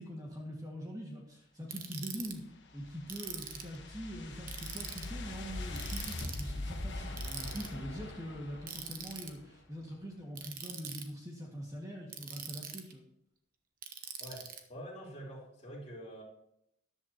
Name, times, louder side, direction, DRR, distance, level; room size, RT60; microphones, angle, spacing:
voice 1, 0.0-2.4 2.7-13.0, equal, 20° right, -2 dB, 1.9 m, -43 dB
Ratchet pawl, 1.7-2.3 3.1-3.8 4.5-5.1 5.8-6.5 7.2-7.7 8.7-9.3 10.3-11.0 12.1-12.9 13.8-14.6, right 8 dB, 45° right, 1.1 m, -43 dB
sound 1, 2.2-9.4, left 2 dB, 60° left, 1.4 m, -42 dB
voice 2, 14.2-16.2, equal, 35° left, -4 dB, 3.9 m, -46 dB
13.5 x 11.0 x 3.0 m, 0.77 s
head